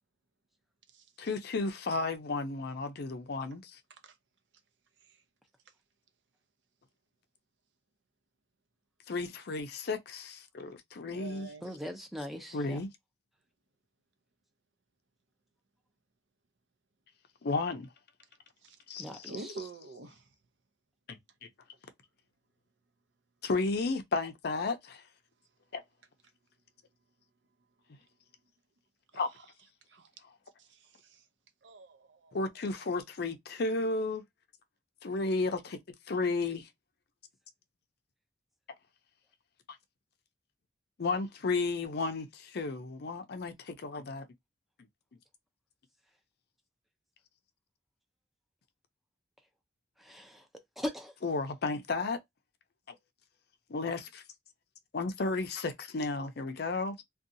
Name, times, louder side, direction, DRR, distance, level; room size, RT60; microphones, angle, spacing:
voice 1, 1.2-3.8 9.1-11.5 12.5-12.9 17.4-17.9 18.9-19.3 21.1-21.5 23.4-25.0 25.7-25.8 29.1-29.3 32.3-34.2 35.0-35.8 36.1-36.7 41.0-44.3 51.2-52.2 53.7-54.2 54.9-57.0, left 3 dB, 60° left, 0.5 m, -33 dB
voice 2, 11.0-11.8 18.6-18.8 19.1-20.3 29.9-30.1 30.6-31.2 31.6-32.4 32.7-32.8, right 3 dB, 75° right, 0.5 m, -47 dB
voice 3, 11.6-12.8 19.0-19.5 50.0-50.4 50.8-51.1, left 1 dB, ahead, 0.5 m, -40 dB
2.6 x 2.3 x 2.5 m
head